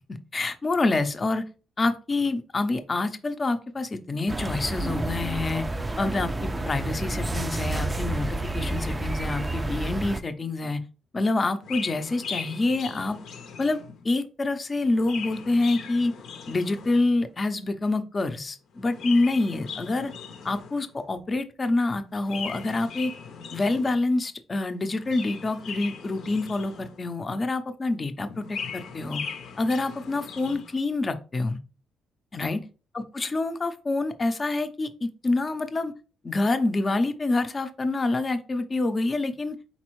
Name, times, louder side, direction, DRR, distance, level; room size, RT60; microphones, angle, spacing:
voice 1, 0.3-1.4 1.8-5.7 6.0-10.8 11.1-13.2 13.6-16.1 16.5-20.1 20.4-23.1 23.5-29.2 29.6-31.6 32.3-32.6 32.9-35.9 36.2-39.6, left 2 dB, 30° left, 9 dB, 0.6 m, -27 dB
sound 1, 4.3-10.2, right 2 dB, 20° right, 0.4 m, -30 dB
Chirp tweet, 11.6-14.1 14.8-17.2 18.7-20.9 22.2-24.1 24.9-27.2 28.2-30.8, left 6 dB, 70° left, 0.7 m, -39 dB
4.1 x 4.0 x 3.1 m, 0.35 s
cardioid pair, 90°, 0 cm